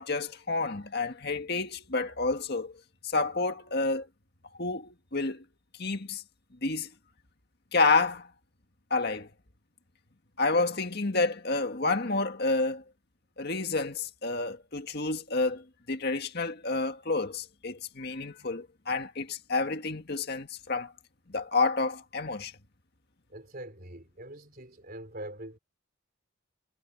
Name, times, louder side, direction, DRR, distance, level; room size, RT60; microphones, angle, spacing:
voice 1, 0.0-4.1 4.6-5.4 5.8-6.2 6.6-6.9 7.7-8.3 8.9-9.3 10.4-12.8 13.4-20.9 21.3-22.5, left 3 dB, 50° left, 1.9 m, -29 dB
voice 2, 23.3-25.6, right 1 dB, 45° right, 4.4 m, -43 dB
head